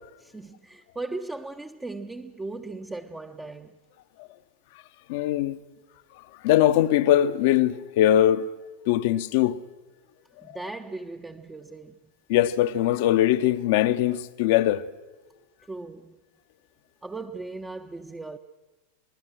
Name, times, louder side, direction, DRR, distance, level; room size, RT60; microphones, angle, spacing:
voice 1, 0.2-3.8 10.4-12.0 15.7-16.2 17.0-18.4, right 3 dB, 10° right, 0.7 m, -37 dB
voice 2, 5.1-5.6 6.4-8.5 8.9-9.6 12.3-14.8, left 12 dB, 50° left, 0.8 m, -21 dB
26.5 x 20.0 x 6.1 m
figure-of-eight pair, 90°, 0 cm